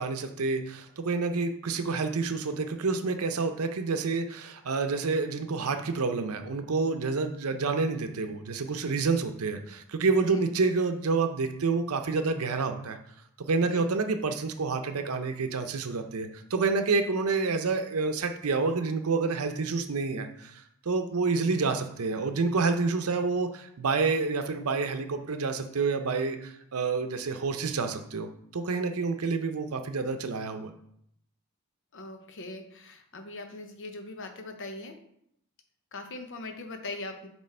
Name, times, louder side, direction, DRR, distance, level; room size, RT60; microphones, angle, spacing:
voice 1, 0.0-13.0 13.5-30.7, right 4 dB, 85° right, 7 dB, 0.7 m, -28 dB
voice 2, 31.9-35.0 35.9-37.3, left 2 dB, 60° left, 6 dB, 0.8 m, -41 dB
7.4 x 3.1 x 4.3 m, 0.71 s
head